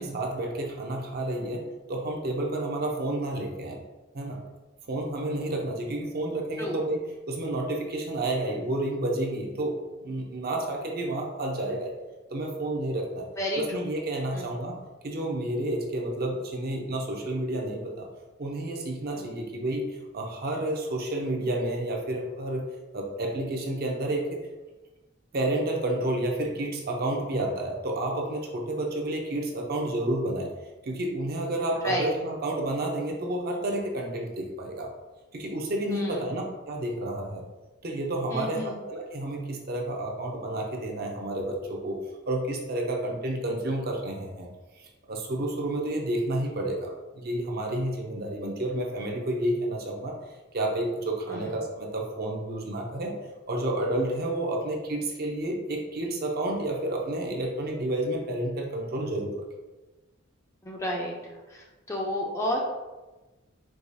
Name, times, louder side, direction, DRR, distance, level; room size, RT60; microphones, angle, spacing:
voice 1, 0.0-3.8 4.1-4.4 4.9-11.9 12.3-13.3 13.6-14.8 15.0-18.1 18.4-22.6 22.9-24.4 25.3-30.5 30.8-34.9 35.3-37.4 37.8-42.0 42.3-44.5 44.8-50.1 50.5-53.2 53.5-59.4, right 1 dB, 45° right, 0 dB, 0.6 m, -30 dB
voice 2, 35.9-36.2 38.3-38.8 51.3-51.5 60.6-61.2 61.5-62.7, equal, 15° left, -1 dB, 0.4 m, -31 dB
4.7 x 2.3 x 2.6 m, 1.1 s
head